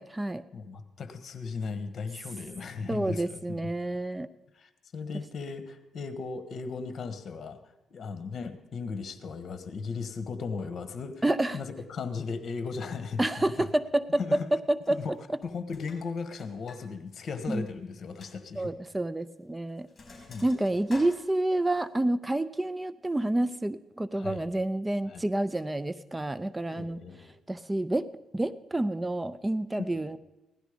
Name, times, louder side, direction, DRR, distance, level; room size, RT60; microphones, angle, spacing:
voice 1, 0.0-0.4 2.9-4.3 11.2-11.6 13.2-15.0 17.5-17.7 18.6-19.9 20.4-27.0 27.5-28.1 28.3-30.2, right 1 dB, 15° right, 15 dB, 0.5 m, -28 dB
voice 2, 0.5-3.6 4.5-7.6 7.9-11.2 11.5-13.7 14.2-14.5 14.9-15.2 15.4-18.7 20.3-20.4 24.2-24.5 25.1-25.2 26.7-27.3 29.8-30.0, left 5 dB, 50° left, 11 dB, 1.4 m, -37 dB
Sink (filling or washing), 12.9-13.0 13.2-13.8 14.7-15.2 15.4-16.8 17.1-17.2 17.6-17.7 18.2-18.3 19.2-19.4 19.7-21.8, left 3 dB, 30° left, 4.2 m, -50 dB
16.5 x 11.5 x 5.1 m, 1.0 s
cardioid pair, 90°, 0 cm